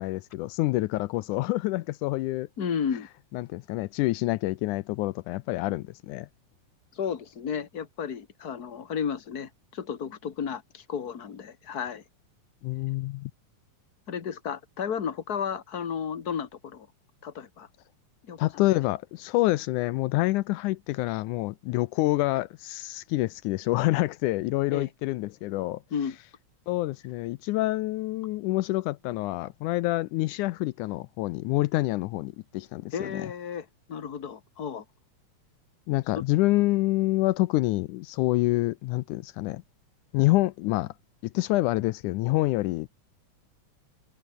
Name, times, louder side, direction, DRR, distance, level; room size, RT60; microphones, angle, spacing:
voice 1, 0.0-2.5 3.3-6.3 12.6-13.3 18.4-25.8 26.7-33.3 35.9-39.6 40.1-40.9 41.2-42.9, left 19 dB, 80° left, 2.0 m, -27 dB
voice 2, 2.6-3.1 6.9-12.0 14.1-16.9 17.2-17.7 18.2-18.4 24.7-24.9 25.9-26.2 32.9-34.8 36.1-36.2, left 7 dB, 35° left, 1.8 m, -33 dB
omnidirectional pair, 3.7 m